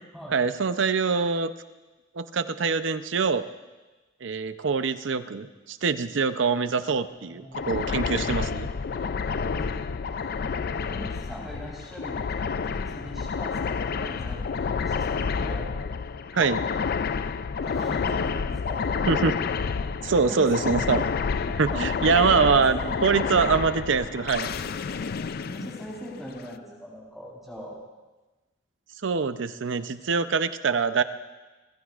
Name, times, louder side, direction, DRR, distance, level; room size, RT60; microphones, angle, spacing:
voice 1, 0.3-1.5 2.1-3.5 4.2-8.7 16.3-16.6 19.1-19.4 20.0-21.0 21.6-24.5 29.0-31.0, right 5 dB, 70° right, 12 dB, 0.6 m, -24 dB
voice 2, 6.9-7.6 9.3-9.8 10.9-14.5 14.8-15.7 17.6-18.9 20.2-20.8 21.5-21.8 22.4-23.1 25.5-27.8 29.7-29.8, equal, ahead, -6 dB, 3.9 m, -40 dB
sound 1, 7.5-26.4, left 5 dB, 50° left, 0.4 m, -29 dB
28.5 x 16.5 x 2.5 m, 1.2 s
head